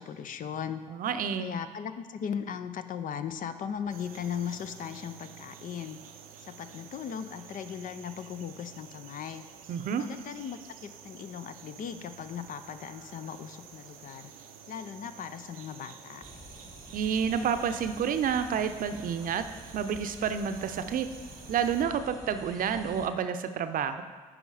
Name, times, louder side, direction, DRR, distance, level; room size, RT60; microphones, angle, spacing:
voice 1, 0.0-0.8 1.4-6.0 6.4-9.4 10.0-14.3 14.7-16.2, left 8 dB, 50° left, 10 dB, 0.6 m, -38 dB
voice 2, 0.9-1.5 9.7-10.0 16.9-19.5 19.7-21.1 21.5-24.0, right 7 dB, 55° right, 9 dB, 0.7 m, -29 dB
sound 1, 3.9-21.8, right 7 dB, 90° right, 0.6 m, -50 dB
sound 2, 16.2-23.1, left 1 dB, 20° left, 1.8 m, -49 dB
9.9 x 5.0 x 4.9 m, 1.4 s
hypercardioid pair, 55°, 17 cm